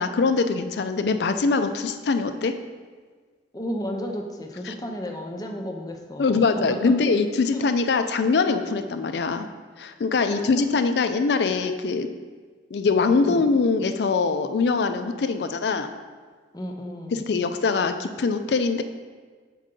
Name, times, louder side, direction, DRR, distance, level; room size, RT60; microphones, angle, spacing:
voice 1, 0.0-2.5 4.7-4.8 6.2-9.5 9.8-12.1 12.7-15.9 17.3-18.8, left 4 dB, 70° left, 9 dB, 0.4 m, -23 dB
voice 2, 3.5-6.9 7.5-7.6 10.2-10.8 13.3-13.5 16.5-17.2, equal, 20° left, 3 dB, 0.5 m, -34 dB
6.5 x 4.6 x 3.7 m, 1.5 s
head